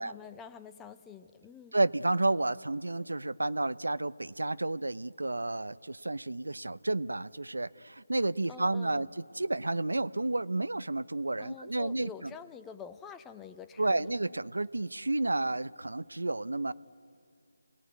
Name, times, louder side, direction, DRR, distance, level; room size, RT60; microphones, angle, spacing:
voice 1, 0.0-1.8 8.5-9.0 11.4-14.1, left 7 dB, 10° left, 11 dB, 0.6 m, -47 dB
voice 2, 1.7-9.1 9.3-12.3 13.8-16.7, right 2 dB, 85° right, 16 dB, 0.7 m, -31 dB
29.5 x 19.5 x 9.5 m, 2.3 s
figure-of-eight pair, 165°, 0 cm